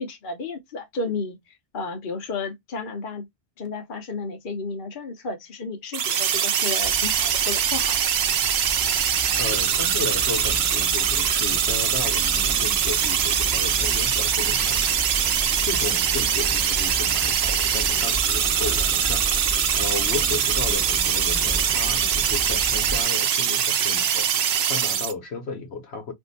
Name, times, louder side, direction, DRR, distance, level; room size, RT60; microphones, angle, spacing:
voice 1, 0.0-3.2 3.6-8.0, left 4 dB, 55° left, 0.9 m, -32 dB
sound 1, 5.9-25.1, right 8 dB, 70° right, 0.8 m, -23 dB
sound 2, 6.8-23.0, right 1 dB, 10° left, 0.8 m, -34 dB
voice 2, 9.4-14.9 15.6-26.1, left 4 dB, 75° left, 1.2 m, -34 dB
2.7 x 2.6 x 3.9 m
omnidirectional pair, 1.1 m